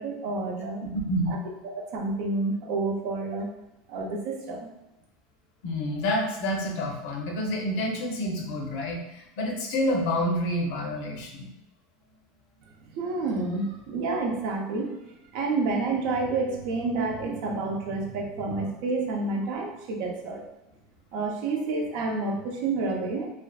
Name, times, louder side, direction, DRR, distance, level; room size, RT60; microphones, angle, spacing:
voice 1, 0.0-0.8 1.3-1.4 1.6-3.5 3.9-4.7 12.9-15.0 15.3-20.4 21.1-23.3, right 3 dB, 65° right, 1 dB, 0.5 m, -29 dB
voice 2, 0.8-1.4 5.6-11.5, left 1 dB, 70° left, 1 dB, 0.6 m, -28 dB
2.5 x 2.3 x 2.2 m, 0.91 s
supercardioid pair, 135°, 0 cm